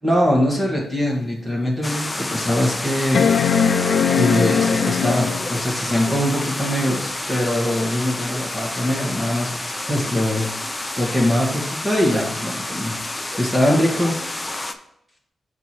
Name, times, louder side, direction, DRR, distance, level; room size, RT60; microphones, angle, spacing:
voice 1, 0.0-3.3 4.2-9.5 9.8-14.3, equal, 10° right, -2 dB, 1.6 m, -22 dB
sound 1, 1.0-1.1 1.7-1.8 3.1-5.6 7.3-7.4, left 7 dB, 70° left, 0.4 m, -20 dB
sound 2, 1.8-14.7, left 2 dB, 15° left, 0.5 m, -29 dB
6.9 x 4.3 x 4.6 m, 0.80 s
wide cardioid pair, 165°, 0 cm